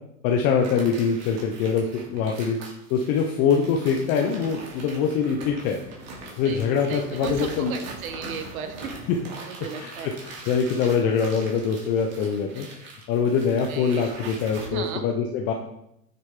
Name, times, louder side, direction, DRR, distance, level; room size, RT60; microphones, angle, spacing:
voice 1, 0.2-2.6 2.9-5.8 6.4-7.7 9.1-9.2 9.8-12.7 13.1-15.5, left 6 dB, 20° left, 3 dB, 0.4 m, -24 dB
sound 1, 0.6-14.7, right 3 dB, 30° right, 2.7 m, -42 dB
voice 2, 6.4-8.9 9.5-10.2 13.7-14.1 14.7-15.0, right 7 dB, 60° right, 7 dB, 1.4 m, -36 dB
9.8 x 6.6 x 3.5 m, 0.79 s
hypercardioid pair, 125°, 47 cm